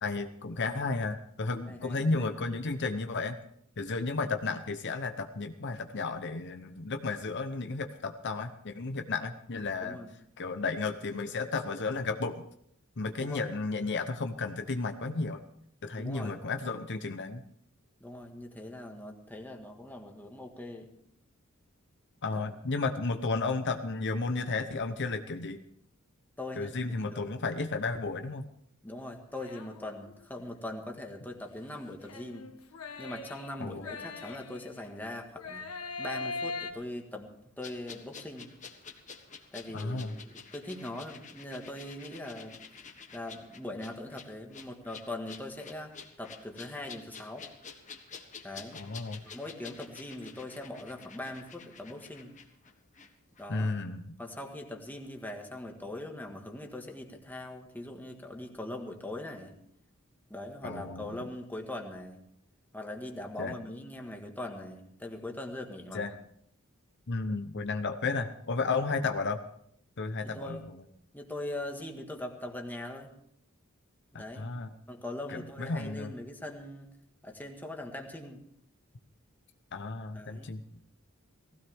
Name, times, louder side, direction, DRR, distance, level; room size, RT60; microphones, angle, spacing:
voice 1, 0.0-3.4 3.8-10.0 10.4-12.4 13.0-15.4 15.8-17.4 22.2-25.6 26.6-28.4 33.6-33.9 39.7-40.1 48.7-49.2 53.5-54.0 60.6-61.2 63.4-63.5 65.9-66.1 67.1-69.4 70.0-70.8 74.4-74.7 75.3-76.1 79.7-80.6, left 3 dB, 55° left, 7 dB, 0.8 m, -33 dB
voice 2, 1.7-2.6 9.8-10.1 13.1-13.4 16.0-16.4 18.0-20.9 22.3-22.5 26.4-27.3 28.8-32.5 33.0-35.7 36.0-38.5 39.5-42.6 43.1-47.5 48.4-48.8 49.2-52.3 53.4-53.7 54.2-59.6 60.3-62.2 62.7-66.1 70.2-70.6 71.1-73.1 74.2-74.5 74.9-76.9 77.2-78.4 80.1-80.5, left 1 dB, 10° left, 2 dB, 1.7 m, -41 dB
sound 1, 29.4-30.2 32.1-34.9 35.4-36.7, left 3 dB, 85° left, 1.4 m, -40 dB
sound 2, 37.6-53.1 53.4-53.5, left 6 dB, 35° left, 1.5 m, -49 dB
18.5 x 16.0 x 3.5 m, 0.69 s
head